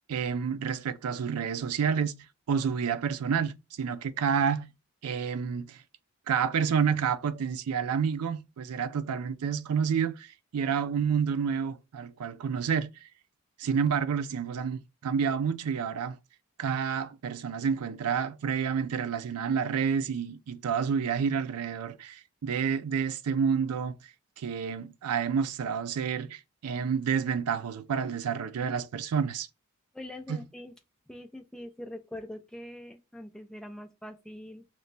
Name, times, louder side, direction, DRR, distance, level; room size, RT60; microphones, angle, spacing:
voice 1, 0.1-4.7 5.0-5.8 6.3-13.1 13.6-16.2 16.6-24.1 24.4-29.5 30.3-30.4, right 6 dB, 85° right, 0.4 m, -29 dB
voice 2, 29.9-30.7 31.1-34.7, left 1 dB, 5° left, 0.3 m, -43 dB
3.0 x 2.1 x 3.9 m
head